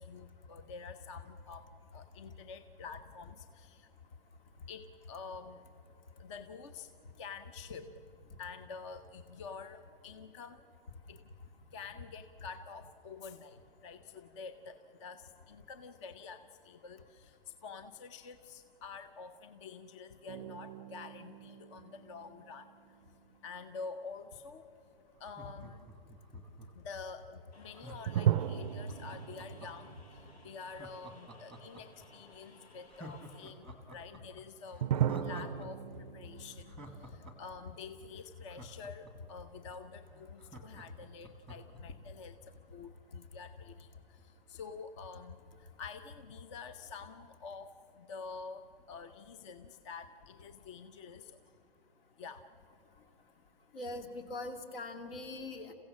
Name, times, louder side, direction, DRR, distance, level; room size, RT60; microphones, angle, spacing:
voice 1, 0.0-1.7 1.9-3.9 4.7-5.6 6.2-6.9 7.2-7.9 8.4-10.6 11.1-11.2 11.7-13.6 13.8-17.3 17.6-22.7 23.4-24.6 25.2-25.9 26.7-33.7 33.9-34.9 35.2-35.8 36.1-36.7 37.1-42.4 42.7-43.9 44.5-45.4 45.8-47.7 48.0-51.4 52.2-52.4, left 5 dB, 30° left, 10 dB, 0.7 m, -48 dB
sound 1, 20.3-23.6 28.1-31.1 31.4-31.5 34.8-38.1, right 10 dB, 40° right, 0.5 m, -37 dB
Laughter, 25.2-26.9 27.7-29.9 30.7-32.1 32.4-32.5 32.9-35.7 35.9-36.0 36.4-39.3 39.8-39.9 40.1-41.8 42.2-42.3, right 1 dB, 5° left, 1.2 m, -50 dB
sound 2, 27.5-33.5, left 2 dB, 90° left, 3.4 m, -60 dB
voice 2, 53.7-55.7, left 2 dB, 65° left, 7 dB, 2.4 m, -42 dB
28.5 x 15.5 x 7.3 m, 2.7 s
hypercardioid pair, 160°, 30 cm